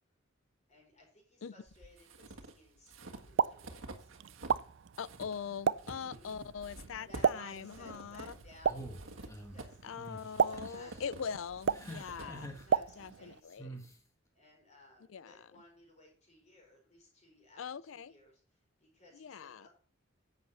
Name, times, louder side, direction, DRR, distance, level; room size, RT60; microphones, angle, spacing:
voice 1, 0.7-4.2 5.8-6.5 7.1-9.8 10.5-11.1 12.1-13.8 14.3-17.6 17.9-18.4 18.8-19.7, left 1 dB, 35° left, 4.6 m, -59 dB
sound 1, 1.7-4.7 4.9-13.1, right 2 dB, 80° right, 1.6 m, -50 dB
Explosion, 3.1-13.4, right 6 dB, 55° right, 0.4 m, -36 dB
voice 2, 5.0-8.3 9.8-12.5 13.0-13.8 15.1-15.5 17.6-18.1 19.1-19.7, left 6 dB, 75° left, 0.4 m, -42 dB
sound 2, 8.7-9.6 10.0-10.2 10.6-11.1 11.7-12.6 13.6-13.9, equal, 15° left, 1.5 m, -46 dB
10.5 x 7.9 x 4.3 m
head